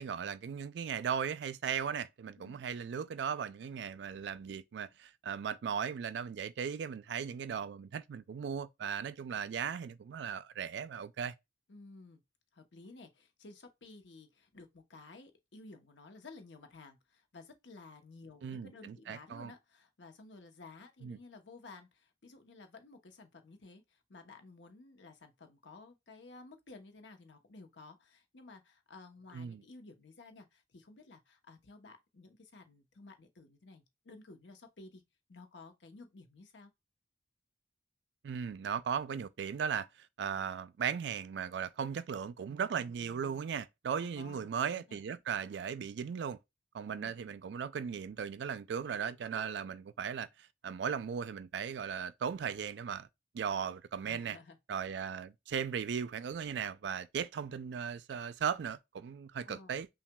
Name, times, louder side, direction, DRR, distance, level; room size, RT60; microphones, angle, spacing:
voice 1, 0.0-11.3 18.4-19.5 21.0-21.2 29.3-29.6 38.2-46.4 46.7-53.1 53.3-54.4 54.7-59.9, right 7 dB, 75° right, 0.3 m, -37 dB
voice 2, 11.7-12.2 12.5-35.0 35.3-36.7 44.0-45.0 47.0-47.1 54.0-54.6 59.5-59.8, left 3 dB, 90° left, 0.8 m, -54 dB
5.8 x 2.3 x 2.2 m
head